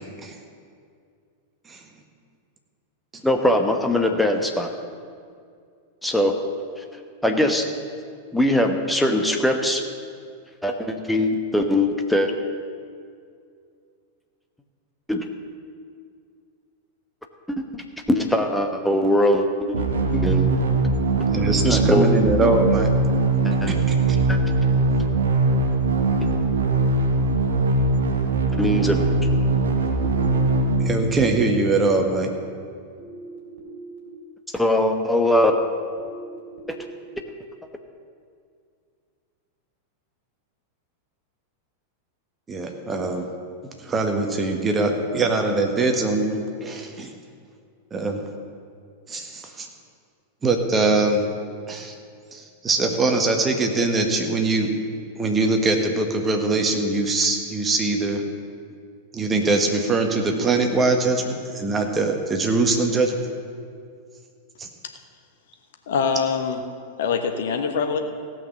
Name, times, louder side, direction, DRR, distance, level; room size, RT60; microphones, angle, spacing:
voice 1, 3.2-4.7 6.0-6.4 6.8-6.9 7.2-7.6 8.3-9.8 10.6-12.3 15.1-15.2 17.5-20.5 21.6-22.1 23.4-23.7 24.3-24.4 28.5-29.1 34.5-35.6 36.7-36.8, left 1 dB, 5° left, 4 dB, 1.1 m, -21 dB
sound 1, 19.7-31.7, right 3 dB, 65° right, 1.2 m, -21 dB
voice 2, 21.3-22.9 23.7-24.0 30.8-32.3 42.5-43.3 43.8-47.1 47.9-48.2 49.1-49.7 50.4-51.3 51.7-51.9 52.3-54.7 55.2-58.2 59.1-63.1 64.6-64.7, right 3 dB, 20° right, 3 dB, 1.5 m, -22 dB
sound 2, 30.6-31.0 33.0-34.0 36.0-37.0, right 2 dB, 45° right, 3.3 m, -40 dB
voice 3, 65.9-66.6 67.0-68.0, left 6 dB, 60° left, 5 dB, 1.1 m, -23 dB
16.0 x 6.1 x 6.8 m, 2.3 s
figure-of-eight pair, 90°, 0 cm